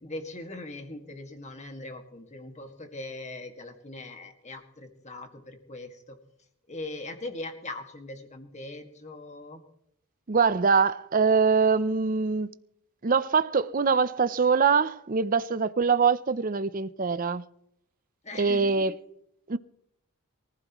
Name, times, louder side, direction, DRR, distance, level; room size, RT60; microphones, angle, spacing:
voice 1, 0.0-6.2 6.7-9.6 18.2-19.0, left 2 dB, 30° left, 1.9 m, -40 dB
voice 2, 10.3-12.5 13.0-17.4 18.4-18.9 19.5-19.6, right 5 dB, 40° right, 0.6 m, -23 dB
24.0 x 15.0 x 3.1 m
head